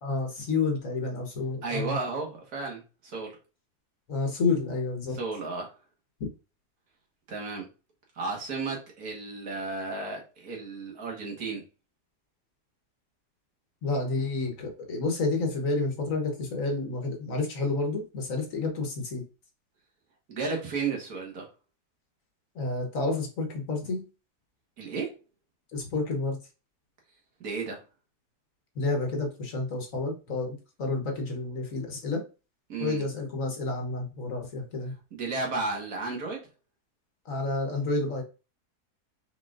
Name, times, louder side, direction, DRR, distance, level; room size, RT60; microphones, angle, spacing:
voice 1, 0.0-2.0 4.1-5.2 13.8-19.2 22.5-24.0 25.7-26.4 28.7-32.2 32.8-34.9 37.2-38.2, left 3 dB, 60° left, 2 dB, 1.5 m, -30 dB
voice 2, 1.6-3.4 5.1-5.7 7.3-7.7 8.2-11.6 20.3-21.5 24.8-25.1 27.4-27.8 32.7-33.1 35.1-36.4, right 4 dB, 70° right, 0 dB, 2.0 m, -33 dB
5.1 x 4.2 x 2.5 m, 0.31 s
omnidirectional pair, 1.7 m